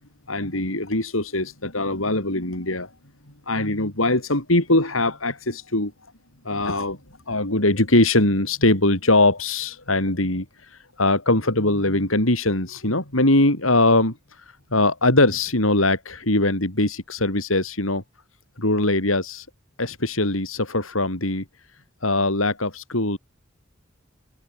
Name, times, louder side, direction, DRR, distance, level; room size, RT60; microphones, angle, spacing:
voice 1, 0.3-2.9 3.5-5.9 6.4-7.0 7.3-14.4 14.7-18.0 18.6-19.5 19.8-21.4 22.0-23.2, left 2 dB, 80° left, 7.2 m, -21 dB
head